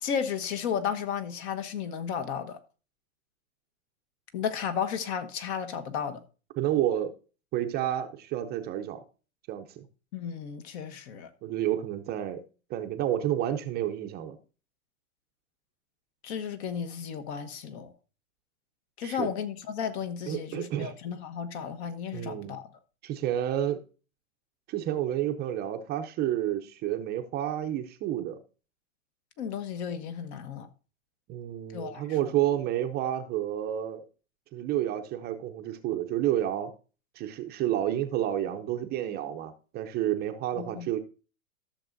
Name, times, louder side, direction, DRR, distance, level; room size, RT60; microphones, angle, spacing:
voice 1, 0.0-2.6 4.3-6.2 10.1-11.3 16.2-17.9 19.0-22.7 29.4-30.7 31.7-32.3 40.6-40.9, left 7 dB, 50° left, 1.2 m, -33 dB
voice 2, 6.6-7.1 7.5-9.0 9.5-9.8 11.4-12.4 12.7-14.4 19.0-19.3 20.3-20.9 22.1-22.6 23.0-23.8 24.7-28.4 31.3-34.0 34.5-36.7 37.2-41.0, right 12 dB, 25° right, 0.6 m, -30 dB
13.5 x 6.6 x 2.6 m
hypercardioid pair, 125°, 41 cm